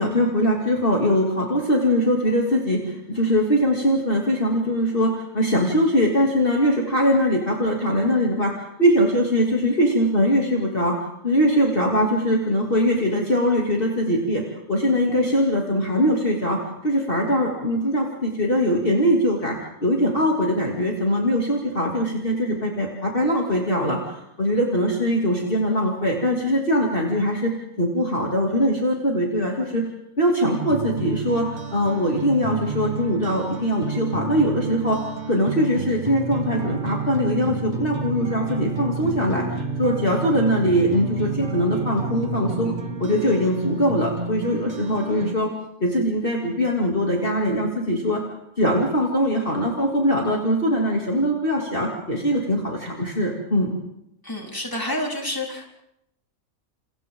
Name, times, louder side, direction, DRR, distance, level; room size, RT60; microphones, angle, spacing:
voice 1, 0.0-8.5 8.8-10.9 11.2-14.4 14.7-29.8 30.2-35.0 35.3-42.7 43.0-45.5 45.8-48.2 48.6-53.7, equal, 40° left, -1 dB, 3.0 m, -22 dB
sound 1, 30.5-45.3, right 4 dB, 30° right, 1.4 m, -30 dB
voice 2, 54.2-55.6, left 1 dB, 15° left, -1 dB, 4.3 m, -28 dB
29.5 x 29.0 x 3.8 m, 0.81 s
omnidirectional pair, 1.5 m